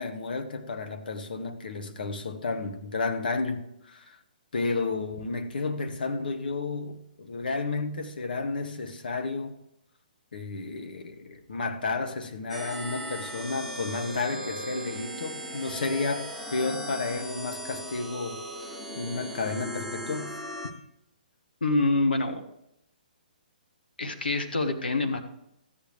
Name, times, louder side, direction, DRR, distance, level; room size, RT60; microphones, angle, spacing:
voice 1, 0.0-4.2 4.5-9.6 10.3-20.3, left 3 dB, 70° left, 1.3 m, -32 dB
sound 1, 12.5-20.7, equal, 5° left, 1.2 m, -38 dB
voice 2, 21.6-22.5 24.0-25.2, left 2 dB, 90° left, 1.6 m, -26 dB
13.5 x 9.0 x 3.3 m
hypercardioid pair, 140°, 5 cm